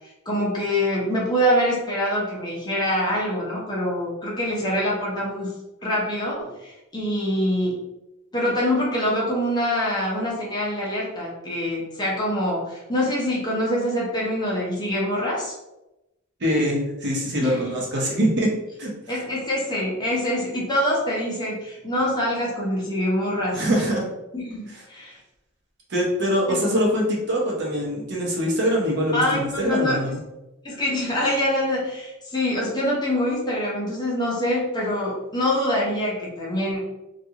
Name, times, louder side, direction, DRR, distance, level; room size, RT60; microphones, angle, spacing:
voice 1, 0.3-5.5 5.8-7.8 8.3-15.5 17.4-17.7 19.1-23.6 24.3-25.2 26.5-26.6 29.1-30.0 30.6-36.8, equal, 20° left, -5 dB, 0.7 m, -25 dB
voice 2, 16.4-18.5 18.8-18.9 23.5-24.0 24.7-24.8 25.9-30.1, equal, 55° right, -2 dB, 0.7 m, -23 dB
2.5 x 2.4 x 2.7 m, 0.95 s
head